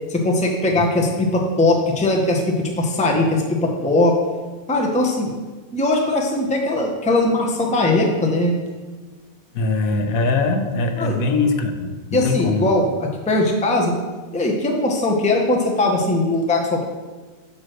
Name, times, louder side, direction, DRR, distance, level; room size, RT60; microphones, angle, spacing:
voice 1, 0.1-4.1 4.7-5.4 5.7-8.5 11.0-11.2 12.1-13.9 14.3-16.8, left 2 dB, 5° left, 0 dB, 0.6 m, -20 dB
voice 2, 9.5-12.7, left 3 dB, 75° left, 5 dB, 1.2 m, -21 dB
9.2 x 3.1 x 6.4 m, 1.3 s
omnidirectional pair, 1.5 m